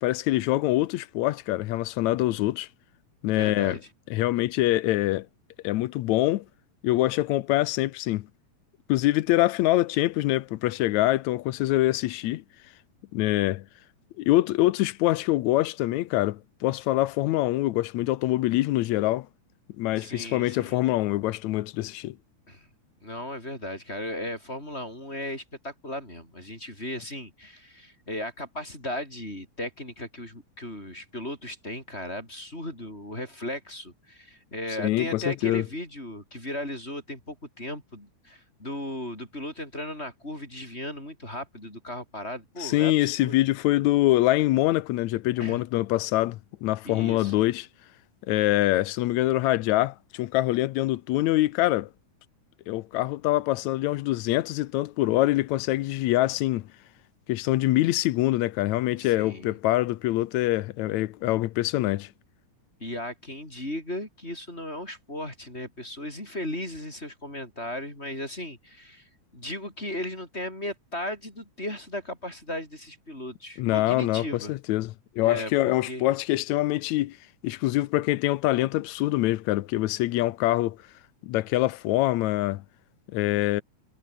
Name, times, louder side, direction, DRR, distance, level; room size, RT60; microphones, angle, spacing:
voice 1, 0.0-2.7 3.2-3.8 4.1-5.3 5.6-6.5 6.8-8.3 8.9-12.4 13.1-13.6 14.2-19.3 19.8-22.2 34.8-35.6 42.6-47.7 48.3-51.9 52.7-56.7 57.3-62.1 73.6-77.2 77.4-80.8 81.2-82.6 83.1-83.6, left 16 dB, 75° left, 2.0 m, -24 dB
voice 2, 3.3-3.8 20.0-20.8 22.5-22.7 23.0-43.3 45.4-45.6 46.8-47.3 59.0-59.6 62.8-74.5 75.2-76.0, left 1 dB, 20° left, 7.6 m, -36 dB
omnidirectional pair, 3.4 m